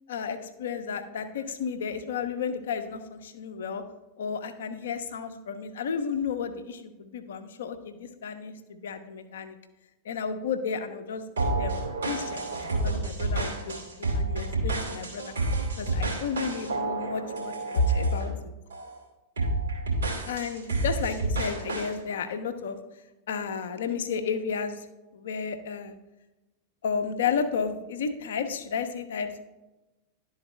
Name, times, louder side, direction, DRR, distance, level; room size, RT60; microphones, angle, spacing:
voice 1, 0.1-3.8 4.2-9.6 10.0-11.7 12.0-13.7 14.1-15.3 15.8-18.5 20.3-22.8 23.3-24.9 25.1-25.9 26.8-29.4, left 5 dB, 60° left, 8 dB, 0.7 m, -32 dB
sound 1, 11.4-18.3 18.7-19.0 19.4-21.9, right 2 dB, 75° right, 2.2 m, -30 dB
11.5 x 4.0 x 3.1 m, 1.0 s
figure-of-eight pair, 90°, 0 cm